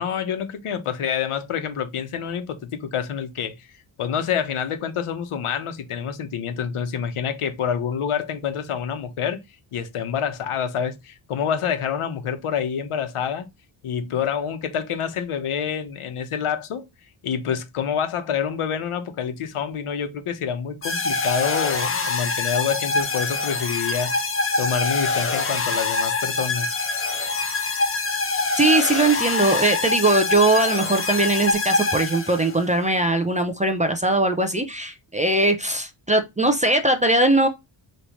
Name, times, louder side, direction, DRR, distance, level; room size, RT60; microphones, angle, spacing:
voice 1, 0.0-3.6 4.0-9.4 9.7-13.5 13.8-16.9 17.2-24.1 24.6-26.7, left 7 dB, 85° left, 1.1 m, -27 dB
sound 1, 20.8-32.6, left 3 dB, 25° left, 0.8 m, -25 dB
voice 2, 28.6-37.5, right 2 dB, 15° right, 0.4 m, -20 dB
5.4 x 3.2 x 3.0 m
wide cardioid pair, 180°, 49 cm